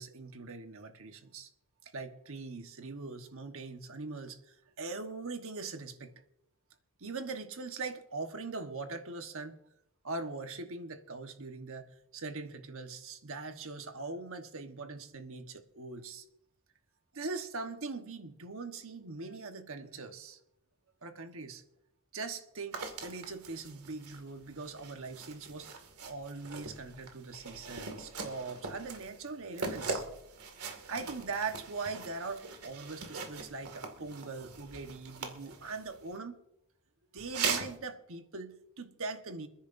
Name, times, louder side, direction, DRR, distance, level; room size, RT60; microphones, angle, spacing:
voice 1, 0.0-1.5 1.8-6.1 7.0-9.6 10.0-11.9 12.1-16.3 17.1-20.4 21.0-21.6 22.1-25.8 26.0-30.0 30.9-36.4 37.1-39.5, right 3 dB, 65° right, 6 dB, 1.3 m, -41 dB
sound 1, 22.7-36.2 37.2-37.8, right 4 dB, 85° right, 2.2 m, -41 dB
28.5 x 10.0 x 2.7 m, 0.83 s
head